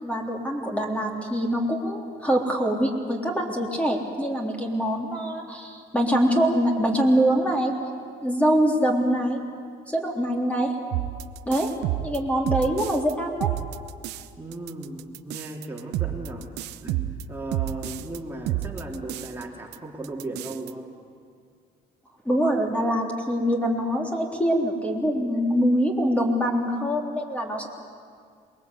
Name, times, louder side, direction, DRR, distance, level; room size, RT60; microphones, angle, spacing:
voice 1, 0.0-7.7 8.2-9.4 9.9-10.8 11.5-11.7 12.0-13.5 22.3-27.7, equal, 10° left, 0 dB, 3.5 m, -24 dB
sound 1, 10.9-13.1 13.4-14.3 14.5-18.2 18.5-19.4 19.7-19.8 20.0-20.7, right 14 dB, 90° right, 0.8 m, -30 dB
voice 2, 14.4-16.5 16.8-20.9, right 2 dB, 15° right, -2 dB, 3.0 m, -36 dB
27.5 x 21.5 x 8.3 m, 2.2 s
cardioid pair, 110°, 17 cm